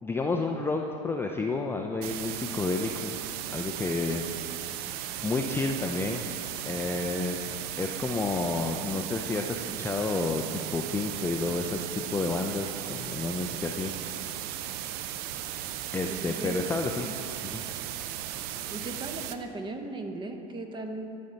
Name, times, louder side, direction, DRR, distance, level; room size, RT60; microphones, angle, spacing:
voice 1, 0.0-3.1 3.5-4.2 4.6-6.2 6.6-13.9 15.9-17.1 17.4-17.6, left 3 dB, 10° left, 2 dB, 0.4 m, -30 dB
sound 1, 2.0-19.4, right 11 dB, 50° right, 0.4 m, -36 dB
voice 2, 16.1-17.1 18.7-21.1, right 2 dB, 20° right, 5 dB, 0.9 m, -38 dB
11.5 x 4.3 x 5.1 m, 2.9 s
hypercardioid pair, 95°, 21 cm